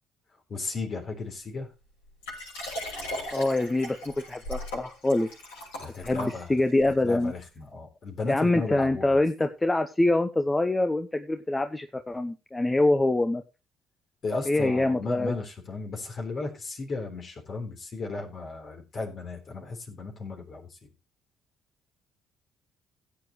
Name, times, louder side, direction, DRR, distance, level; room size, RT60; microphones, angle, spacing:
voice 1, 0.5-1.7 5.8-6.5 7.0-9.2 14.2-20.7, left 3 dB, 50° left, 3 dB, 3.8 m, -35 dB
Liquid, 2.2-6.8 7.5-7.6, left 1 dB, 80° left, 6.6 m, -38 dB
voice 2, 3.3-5.3 6.0-7.3 8.3-13.4 14.5-15.4, left 2 dB, 20° left, 8 dB, 0.9 m, -25 dB
16.5 x 8.0 x 3.1 m, 0.28 s
hypercardioid pair, 50°, 0 cm